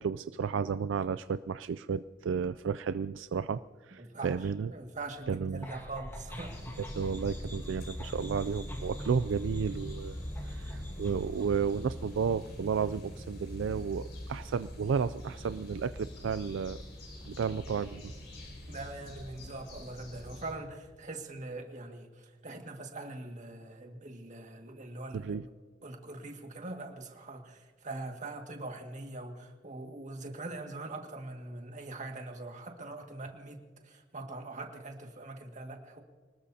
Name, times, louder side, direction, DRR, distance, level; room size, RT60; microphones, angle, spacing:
voice 1, 0.0-4.7 5.3-5.7 7.0-10.2 10.4-16.8 17.2-18.1 25.1-25.4, right 6 dB, 70° right, 13 dB, 0.4 m, -32 dB
voice 2, 4.0-6.5 18.7-25.4 25.8-36.0, right 2 dB, 40° right, 3 dB, 2.0 m, -42 dB
sound 1, 5.6-12.8, equal, 10° left, 1.8 m, -42 dB
sound 2, 6.3-20.5, left 1 dB, 65° left, 5.4 m, -45 dB
24.5 x 20.0 x 2.8 m, 1.5 s
head